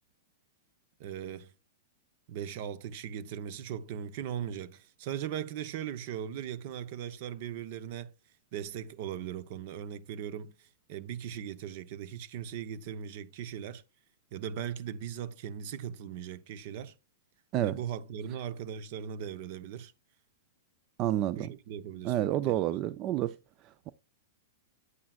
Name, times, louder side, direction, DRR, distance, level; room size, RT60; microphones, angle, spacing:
voice 1, 1.0-1.5 2.3-8.1 8.5-13.8 14.3-16.9 17.6-19.9 21.3-22.7, right 9 dB, 55° right, 0.8 m, -39 dB
voice 2, 21.0-21.5 22.0-23.4 23.6-23.9, right 13 dB, 40° right, 0.4 m, -29 dB
9.5 x 8.5 x 2.4 m
hypercardioid pair, 115°, 0 cm